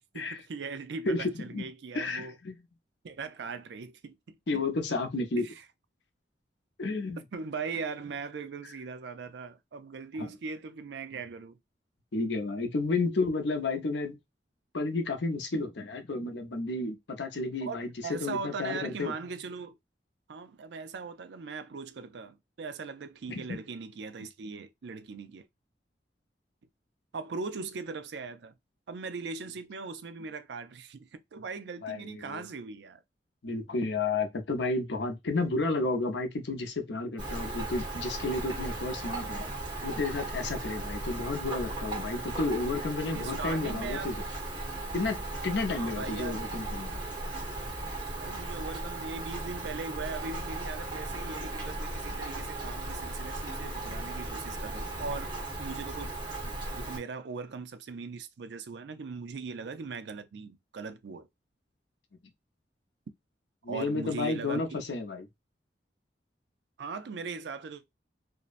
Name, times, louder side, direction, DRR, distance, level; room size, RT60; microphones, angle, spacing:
voice 1, 0.0-2.4 3.0-4.6 5.4-5.5 7.3-11.6 17.6-19.8 20.3-25.5 27.1-28.5 28.9-33.0 43.0-44.2 45.7-46.4 48.1-55.3 55.6-56.1 56.4-61.3 63.7-64.8 66.8-67.8, right 4 dB, 75° right, 0.4 m, -39 dB
voice 2, 1.1-1.6 1.9-2.6 4.5-5.5 6.8-7.2 10.2-10.3 12.1-14.2 14.7-19.2 23.3-23.6 31.8-32.4 33.4-39.5 39.8-44.2 44.9-47.0 63.6-65.3, left 3 dB, 80° left, 0.6 m, -32 dB
Rain, 37.2-57.0, right 2 dB, 25° right, 0.9 m, -36 dB
2.7 x 2.0 x 2.4 m
head